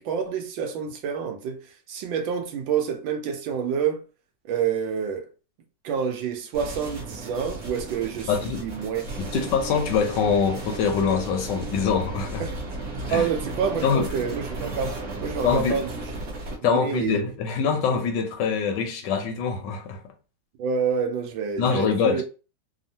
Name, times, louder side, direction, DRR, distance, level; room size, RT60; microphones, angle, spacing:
voice 1, 0.0-4.0 4.4-5.3 5.8-9.0 9.3-9.5 12.4-12.5 13.1-16.1 16.6-17.2 20.6-22.2, right 7 dB, 80° right, 1.4 m, -28 dB
sound 1, 6.5-16.6, right 2 dB, 50° right, 1.1 m, -35 dB
voice 2, 8.3-8.6 9.2-12.4 13.1-13.3 13.8-14.1 15.4-15.8 16.6-20.0 21.6-22.2, left 6 dB, 75° left, 1.2 m, -24 dB
3.5 x 2.0 x 2.7 m
omnidirectional pair, 2.1 m